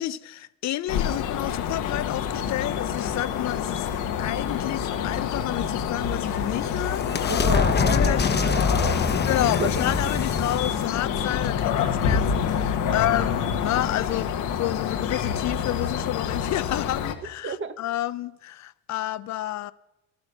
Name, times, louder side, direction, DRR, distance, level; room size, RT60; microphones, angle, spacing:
voice 1, 0.0-3.9 4.2-7.1 7.9-8.3 9.3-19.7, left 14 dB, 65° left, 0.6 m, -30 dB
sound 1, 0.9-17.1, left 7 dB, 85° left, 1.2 m, -27 dB
sound 2, 6.0-12.4, left 5 dB, 35° left, 1.1 m, -26 dB
voice 2, 7.3-9.1 9.4-9.8 12.8-13.0 17.4-17.8, right 5 dB, 45° right, 1.2 m, -32 dB
12.0 x 11.5 x 6.5 m
cardioid pair, 80°, 30 cm